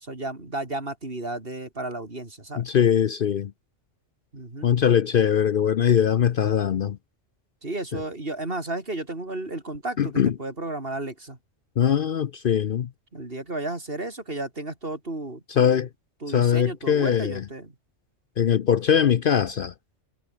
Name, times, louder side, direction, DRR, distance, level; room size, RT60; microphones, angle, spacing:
voice 1, 0.0-2.7 4.3-4.7 7.6-11.4 13.1-15.8 16.2-17.7, right 2 dB, 50° right, 4.3 m, -33 dB
voice 2, 2.6-3.5 4.6-7.0 7.9-8.0 10.0-10.3 11.8-12.9 15.5-15.9 16.3-17.4 18.4-19.7, left 8 dB, 55° left, 0.8 m, -21 dB
omnidirectional pair, 1.2 m